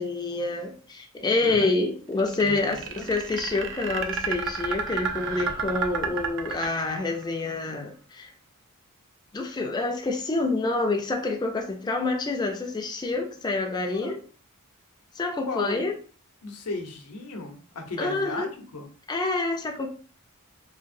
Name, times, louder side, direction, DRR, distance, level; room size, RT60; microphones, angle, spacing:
voice 1, 0.0-8.3 9.3-14.2 15.2-15.9 18.0-18.5 19.1-19.9, left 3 dB, 20° left, 0.4 m, -27 dB
voice 2, 1.4-1.7 2.4-3.1 13.8-14.1 15.4-15.8 16.4-18.9, left 3 dB, 90° left, 0.7 m, -36 dB
sound 1, 2.2-7.2, right 6 dB, 60° right, 0.4 m, -31 dB
sound 2, 3.8-7.9, right 4 dB, 40° right, 0.9 m, -45 dB
2.9 x 2.7 x 2.5 m
head